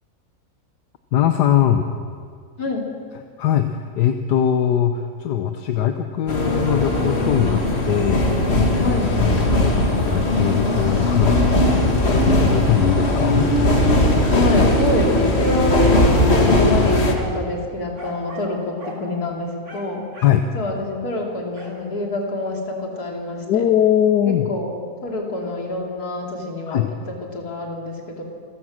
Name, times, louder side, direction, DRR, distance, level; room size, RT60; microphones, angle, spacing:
voice 1, 1.1-1.9 3.4-8.2 8.5-13.5 20.2-20.4 23.5-24.5 26.7-26.9, left 10 dB, 85° left, 7 dB, 1.5 m, -21 dB
voice 2, 2.6-2.9 8.8-9.1 14.3-16.1 16.4-20.1 20.5-23.6 24.3-24.7 25.0-26.8 27.3-28.2, left 2 dB, 70° left, 0 dB, 3.5 m, -26 dB
sound 1, 6.3-17.1, left 1 dB, 40° left, 2.1 m, -18 dB
sound 2, 15.8-16.5 17.1-17.5 18.0-18.5 18.8-19.0 19.6-20.4 21.6-21.8, right 2 dB, 45° right, 3.6 m, -38 dB
27.5 x 15.0 x 6.4 m, 2.2 s
omnidirectional pair, 1.7 m